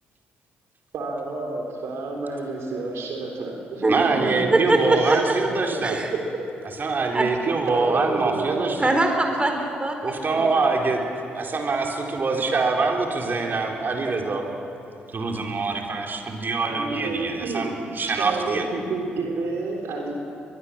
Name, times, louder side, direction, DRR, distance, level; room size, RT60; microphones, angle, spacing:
voice 1, 0.9-5.2 5.9-6.0 7.7-8.9 16.6-17.7 18.1-20.1, right 3 dB, 60° right, 1 dB, 3.7 m, -30 dB
voice 2, 3.9-6.0 6.8-8.9 10.0-11.0 11.3-14.5 15.1-18.6, right 3 dB, 40° right, 1 dB, 4.0 m, -24 dB
voice 3, 4.5-5.2 5.8-6.1 7.1-7.2 8.8-10.5, right 2 dB, 20° right, 4 dB, 4.2 m, -22 dB
22.5 x 22.5 x 7.5 m, 2.7 s
figure-of-eight pair, 45°, 5 cm